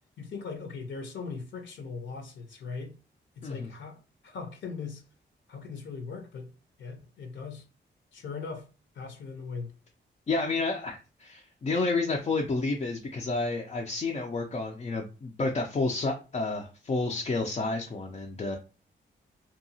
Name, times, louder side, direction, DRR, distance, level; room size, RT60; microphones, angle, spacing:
voice 1, 0.2-2.9 3.4-5.0 5.5-6.5 6.8-7.6 8.1-8.7 8.9-9.7, left 4 dB, 70° left, 0.6 m, -39 dB
voice 2, 10.3-18.6, left 3 dB, 35° left, 0.4 m, -30 dB
2.7 x 2.3 x 2.7 m
wide cardioid pair, 110°, 20 cm